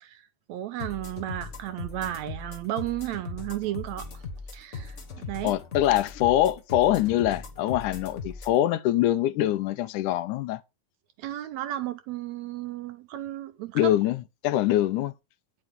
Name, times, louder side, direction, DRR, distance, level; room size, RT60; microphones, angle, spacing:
voice 1, 0.0-4.2 4.5-5.6 11.2-13.9, right 13 dB, 80° right, 1.8 m, -34 dB
sound 1, 0.8-8.6, left 3 dB, 55° left, 0.8 m, -39 dB
voice 2, 5.4-10.6 13.8-15.1, left 13 dB, 85° left, 2.1 m, -24 dB
9.5 x 7.6 x 3.6 m
omnidirectional pair, 3.6 m